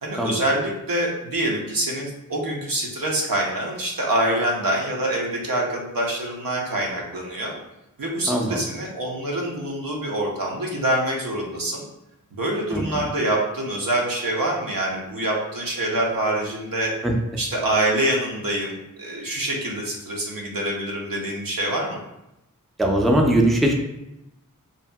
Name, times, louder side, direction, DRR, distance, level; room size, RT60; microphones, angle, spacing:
voice 1, 0.0-7.5 8.0-11.8 12.3-16.9 17.4-22.0, right 1 dB, 85° right, -1 dB, 0.6 m, -25 dB
voice 2, 8.3-8.6 12.7-13.0 17.0-17.1 22.8-23.7, right 1 dB, ahead, 1 dB, 0.3 m, -20 dB
2.7 x 2.5 x 2.2 m, 0.88 s
wide cardioid pair, 50°, 33 cm